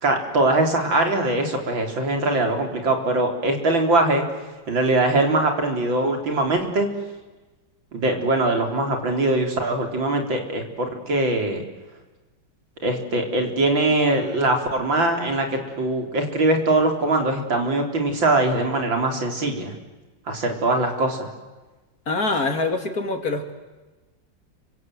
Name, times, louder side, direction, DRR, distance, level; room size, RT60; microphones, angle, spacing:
voice 1, 0.0-4.2 4.7-6.9 7.9-11.6 12.8-19.7 20.3-21.3, right 2 dB, 80° right, 4 dB, 4.6 m, -22 dB
voice 2, 22.1-23.5, left 3 dB, 50° left, 6 dB, 3.1 m, -24 dB
29.5 x 25.5 x 8.0 m, 1.2 s
omnidirectional pair, 2.1 m